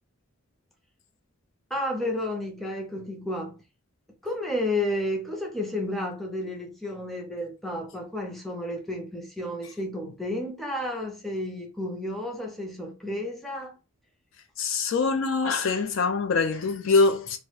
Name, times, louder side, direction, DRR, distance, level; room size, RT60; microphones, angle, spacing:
voice 1, 1.7-3.6 4.2-13.8, left 1 dB, ahead, 0.4 m, -31 dB
voice 2, 14.6-17.4, left 4 dB, 60° left, 0.4 m, -24 dB
2.3 x 2.1 x 2.9 m
head